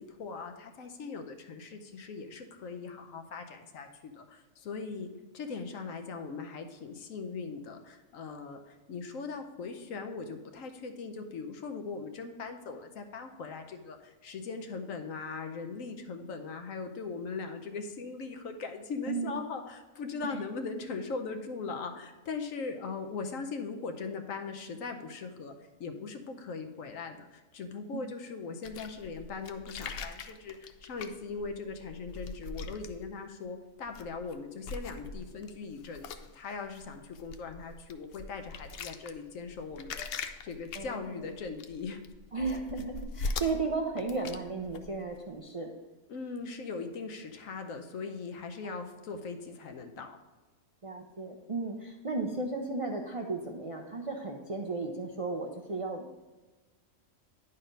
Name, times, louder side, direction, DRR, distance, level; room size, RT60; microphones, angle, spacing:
voice 1, 0.0-5.1 5.3-25.5 25.8-42.0 46.1-50.2, left 4 dB, 80° left, 6 dB, 1.1 m, -40 dB
voice 2, 19.1-19.4 20.2-20.4 27.9-28.1 40.7-41.3 42.3-45.7 48.6-48.7 50.8-56.0, right 3 dB, 45° right, 1 dB, 0.4 m, -35 dB
sound 1, 28.6-33.4 33.8-34.3 34.6-45.4, left 4 dB, 65° left, 0.6 m, -42 dB
10.0 x 4.1 x 5.3 m, 1.2 s
omnidirectional pair, 1.4 m